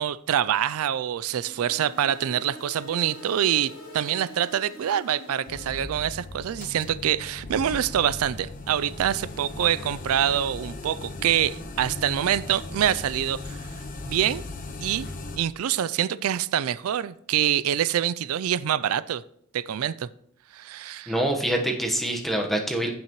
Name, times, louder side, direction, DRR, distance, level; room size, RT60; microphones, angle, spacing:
voice 1, 0.0-13.6 14.1-14.4 14.8-15.1 15.4-19.2 19.5-20.1 20.5-21.2, right 10 dB, 85° right, 17 dB, 0.4 m, -25 dB
sound 1, 1.4-6.2, equal, 85° left, 3.2 m, -44 dB
sound 2, 5.5-15.4, left 2 dB, 40° left, 1.0 m, -38 dB
voice 2, 21.1-22.9, right 1 dB, ahead, 2 dB, 1.2 m, -25 dB
15.5 x 5.8 x 3.1 m, 0.68 s
head